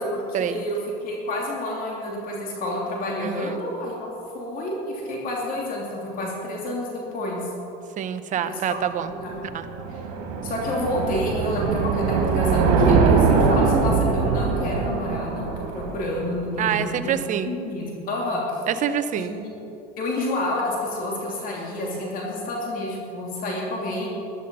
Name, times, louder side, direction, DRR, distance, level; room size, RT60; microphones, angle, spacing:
voice 1, 0.0-7.4 8.4-8.8 9.1-9.4 9.9-10.0 10.4-17.1 17.5-18.4 19.2-19.5 20.0-24.1, left 1 dB, 45° left, -2 dB, 2.8 m, -29 dB
voice 2, 3.2-3.6 8.0-9.1 9.5-9.6 16.6-17.5 18.7-19.3, right 9 dB, 40° right, 10 dB, 0.9 m, -26 dB
sound 1, 9.2-16.5, right 4 dB, 75° right, 2.4 m, -22 dB
14.0 x 11.0 x 5.5 m, 2.8 s
supercardioid pair, 110°, 20 cm